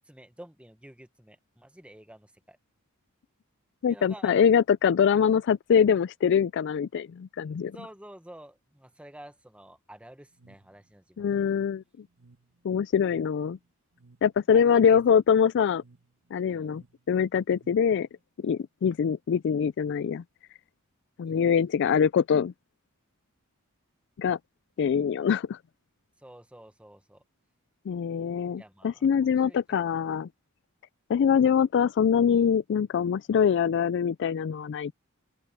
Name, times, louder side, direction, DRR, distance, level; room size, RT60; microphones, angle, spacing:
voice 1, 0.0-2.6 3.9-4.4 7.7-11.5 14.5-15.1 16.5-16.7 21.2-21.5 26.2-27.2 28.6-29.6, right 1 dB, 5° right, 1.0 m, -50 dB
voice 2, 3.8-7.8 11.2-11.8 12.6-13.6 14.2-15.8 16.3-18.1 18.4-20.2 21.2-22.5 24.2-24.4 24.8-25.6 27.9-30.3 31.1-34.9, left 7 dB, 55° left, 0.3 m, -24 dB
sound 1, 10.3-18.2, right 3 dB, 65° right, 1.6 m, -61 dB
open air
head